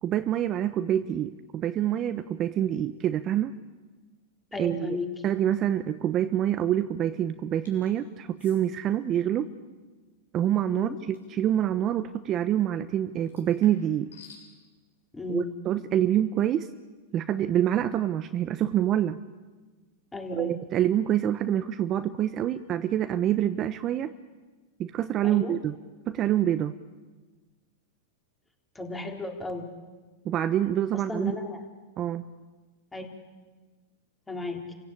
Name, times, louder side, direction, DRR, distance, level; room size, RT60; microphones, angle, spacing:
voice 1, 0.0-3.5 4.6-5.0 5.2-9.5 10.3-14.1 15.3-16.7 17.1-19.2 20.3-24.1 24.8-25.8 26.1-26.7 30.2-31.3 32.0-32.2, right 11 dB, 35° right, 10 dB, 1.0 m, -26 dB
voice 2, 4.5-5.1 9.3-9.4 10.7-11.0 15.1-15.6 20.1-20.6 25.2-25.6 28.8-29.7 30.9-31.6 32.9-33.0 34.3-34.7, left 2 dB, 10° left, 2 dB, 3.9 m, -34 dB
sound 1, 7.7-7.9 8.4-8.6 11.1-11.4 13.2-14.5, left 6 dB, 90° left, 7.2 m, -52 dB
29.5 x 16.5 x 8.7 m, 1.3 s
hypercardioid pair, 125°, 0 cm